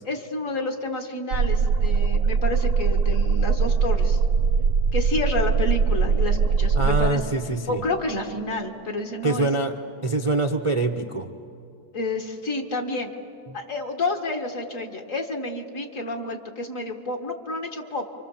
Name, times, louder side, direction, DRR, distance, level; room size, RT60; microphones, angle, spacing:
voice 1, 0.0-4.2 4.9-7.2 7.7-9.5 11.9-13.1 13.5-18.0, left 2 dB, 50° left, 3 dB, 2.3 m, -29 dB
sound 1, 1.3-7.1, right 5 dB, 70° right, 1.4 m, -21 dB
voice 2, 6.8-7.8 9.2-9.7 10.0-11.3 13.5-13.6, right 2 dB, 25° right, 3 dB, 0.7 m, -24 dB
30.0 x 25.5 x 7.4 m, 2.7 s
omnidirectional pair, 1.8 m